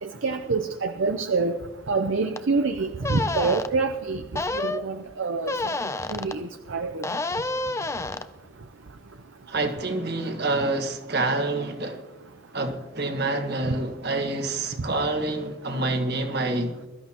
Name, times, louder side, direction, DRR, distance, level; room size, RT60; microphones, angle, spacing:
voice 1, 0.0-1.6 1.9-4.2 4.5-5.7 6.1-7.1, right 4 dB, 70° right, 7 dB, 0.7 m, -26 dB
sound 1, 2.3-2.4 3.0-3.7 4.3-4.8 5.4-6.4 7.0-8.3, left 2 dB, 15° left, 0.5 m, -29 dB
voice 2, 9.5-12.0 12.5-16.8, right 2 dB, 50° right, 5 dB, 1.7 m, -27 dB
22.0 x 13.0 x 3.0 m, 1.1 s
head